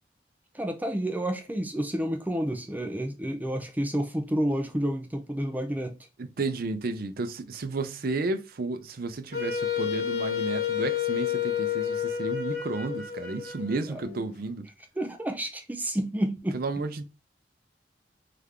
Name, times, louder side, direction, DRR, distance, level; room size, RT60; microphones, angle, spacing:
voice 1, 0.5-6.0 13.9-14.0 15.0-16.6, right 1 dB, 10° right, 0.5 m, -30 dB
voice 2, 6.2-14.7 16.5-17.0, right 3 dB, 55° right, 0.5 m, -32 dB
Wind instrument woodwind instrument, 9.3-14.3, left 9 dB, 60° left, 0.8 m, -30 dB
3.5 x 3.3 x 3.6 m
head